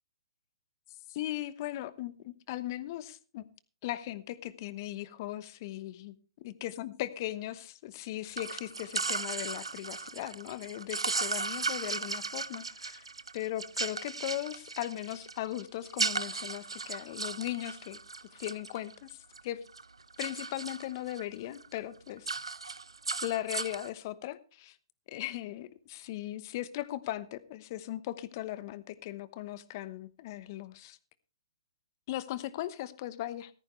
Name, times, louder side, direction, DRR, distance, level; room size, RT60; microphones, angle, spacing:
voice 1, 1.1-3.4 3.8-6.1 6.4-13.0 13.3-18.0 18.3-19.2 19.4-19.6 20.2-22.3 23.2-24.8 25.1-31.0 32.1-33.5, left 14 dB, 40° left, 1.0 m, -38 dB
sound 1, 8.3-19.4 19.7-21.2 21.6-21.8 22.1-23.9, right 4 dB, 90° right, 0.6 m, -36 dB
14.5 x 14.0 x 3.2 m
hypercardioid pair, 130°, 3 cm